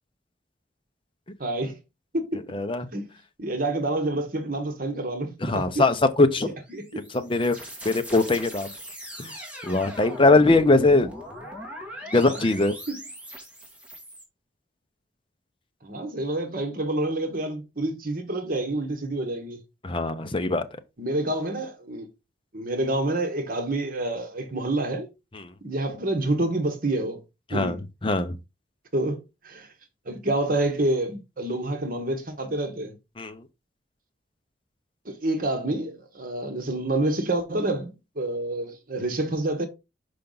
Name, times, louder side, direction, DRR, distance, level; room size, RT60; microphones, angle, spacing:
voice 1, 1.4-1.8 2.1-2.5 2.9-3.1 3.4-5.8 6.4-7.0 7.5-7.7 12.2-12.4 12.9-13.0 15.8-19.6 21.0-22.1 22.5-25.1 25.6-27.2 27.5-27.8 28.9-29.7 30.0-32.9 35.0-39.7, right 2 dB, 50° right, 1.4 m, -28 dB
voice 2, 2.5-2.9 5.4-6.5 7.2-7.6 7.8-8.7 9.2-9.3 9.6-11.1 12.1-12.7 19.8-20.7 27.5-27.8 28.0-28.4 33.2-33.4, left 2 dB, 30° left, 0.7 m, -21 dB
sound 1, 6.6-14.2, equal, 5° right, 1.9 m, -40 dB
5.8 x 5.1 x 3.9 m
head